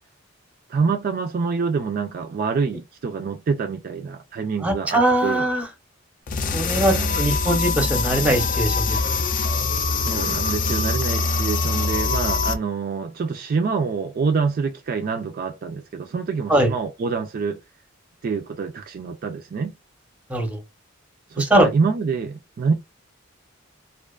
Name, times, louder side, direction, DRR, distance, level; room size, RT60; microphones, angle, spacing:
voice 1, 0.7-5.5 6.6-7.2 9.9-17.6 18.2-19.7 21.3-22.7, right 5 dB, 45° right, 0.3 m, -26 dB
voice 2, 4.6-5.7 6.5-9.0 16.5-16.7 20.3-20.6 21.4-21.7, right 1 dB, 5° right, 0.6 m, -21 dB
sound 1, 6.3-12.6, left 4 dB, 40° left, 0.4 m, -23 dB
2.4 x 2.2 x 2.3 m
head